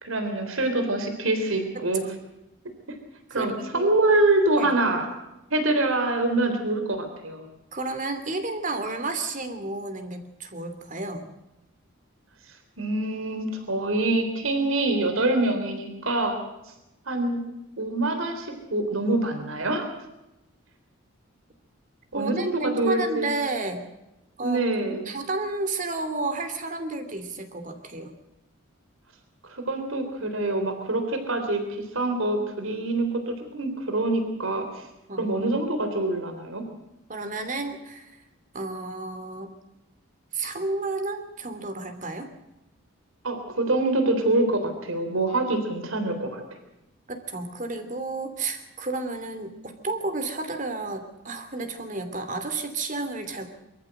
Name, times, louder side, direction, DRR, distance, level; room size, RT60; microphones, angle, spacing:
voice 1, 0.0-2.0 3.3-5.1 5.5-7.4 12.8-16.4 17.1-17.4 17.8-19.9 22.1-23.3 24.4-25.1 29.4-34.8 35.2-36.6 43.2-46.4, right 2 dB, 80° right, 6 dB, 3.6 m, -25 dB
voice 2, 1.7-2.1 3.3-4.0 4.6-4.7 7.7-11.2 22.1-23.9 24.4-24.6 25.0-28.1 35.1-35.3 37.1-38.2 38.5-39.6 40.3-42.3 47.1-53.5, right 3 dB, 40° right, 8 dB, 2.7 m, -31 dB
24.5 x 14.0 x 7.8 m, 0.94 s
head